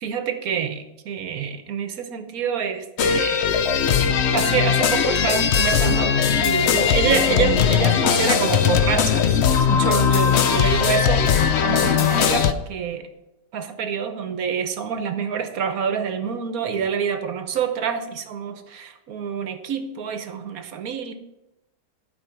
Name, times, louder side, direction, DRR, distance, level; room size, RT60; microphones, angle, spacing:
voice 1, 0.0-3.5 4.0-13.1 13.5-21.1, right 7 dB, 65° right, 8 dB, 1.3 m, -27 dB
sound 1, 3.0-12.5, left 7 dB, 65° left, 0.7 m, -19 dB
12.5 x 5.2 x 5.8 m, 0.93 s
omnidirectional pair, 1.8 m